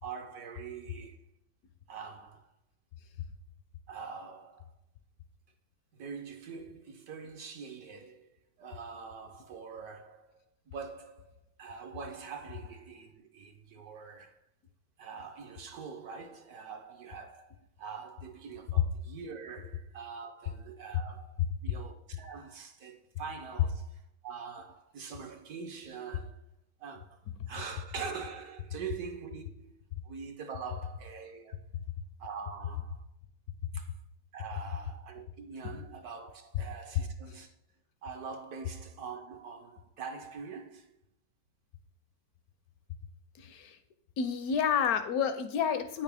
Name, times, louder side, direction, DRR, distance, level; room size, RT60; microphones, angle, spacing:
voice 1, 0.0-1.2 1.9-2.5 3.9-4.7 5.9-8.3 8.6-14.4 15.0-17.5 17.8-21.3 21.6-26.4 26.8-27.2 27.5-29.7 30.0-31.6 32.2-33.0 33.7-33.9 34.3-37.5 38.0-40.9, right 6 dB, 65° right, 1.0 m, -44 dB
voice 2, 43.4-43.8 44.2-46.0, left 7 dB, 70° left, 0.9 m, -29 dB
8.6 x 5.8 x 3.4 m
omnidirectional pair, 2.0 m